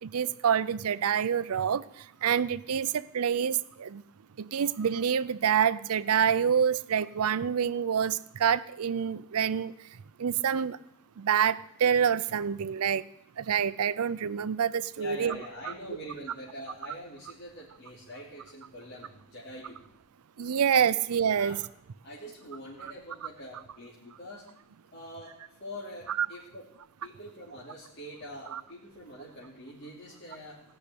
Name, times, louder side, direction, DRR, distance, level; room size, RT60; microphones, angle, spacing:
voice 1, 0.0-4.0 4.4-9.9 10.2-10.8 11.2-13.1 13.4-15.4 15.7-15.8 20.4-21.6 26.1-26.3 28.5-28.6, right 8 dB, 80° right, 17 dB, 0.5 m, -27 dB
voice 2, 15.0-19.8 21.3-21.6 22.0-24.5 24.9-26.7 27.0-30.6, equal, 50° left, -6 dB, 3.1 m, -44 dB
17.0 x 6.5 x 9.9 m, 0.75 s
head